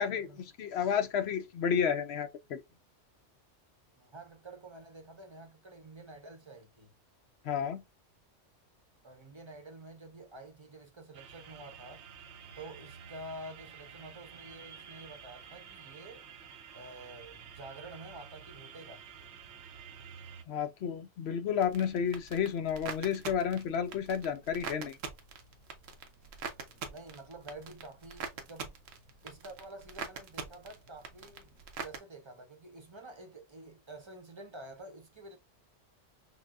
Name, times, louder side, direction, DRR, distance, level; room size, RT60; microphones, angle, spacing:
voice 1, 0.0-0.4 3.9-6.9 9.0-12.1 12.6-16.2 16.7-19.3 26.4-28.7 29.2-31.5 31.8-35.4, right 2 dB, 25° right, 0.8 m, -49 dB
voice 2, 0.6-2.6 7.4-7.8 20.5-25.0, left 7 dB, 65° left, 0.8 m, -31 dB
sound 1, 11.1-20.4, right 7 dB, 70° right, 0.9 m, -50 dB
sound 2, 21.6-32.0, right 5 dB, 90° right, 1.1 m, -44 dB
5.9 x 2.2 x 2.4 m
omnidirectional pair, 1.3 m